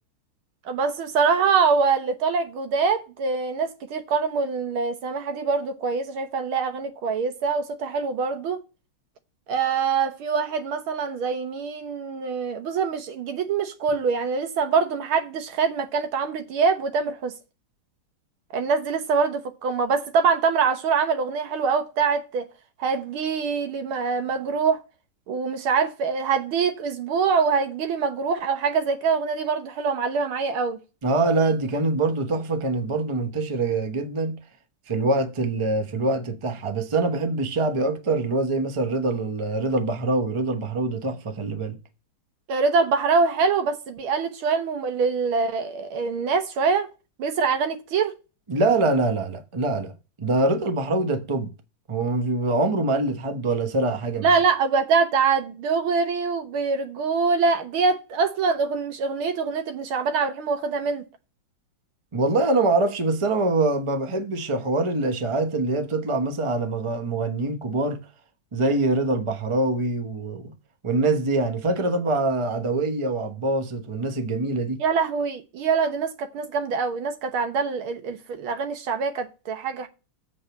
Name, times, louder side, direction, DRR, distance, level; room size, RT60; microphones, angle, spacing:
voice 1, 0.7-8.6 9.5-17.3 18.5-22.4 22.8-24.8 25.3-30.8 42.5-46.9 47.2-48.1 54.2-61.0 74.8-79.9, right 5 dB, 85° right, 2.0 m, -24 dB
voice 2, 31.0-34.4 34.9-41.8 48.5-49.9 50.2-51.5 51.9-54.3 62.1-68.0 68.5-70.5 70.8-74.8, right 2 dB, 20° right, 0.8 m, -24 dB
7.8 x 4.3 x 7.0 m
omnidirectional pair, 2.3 m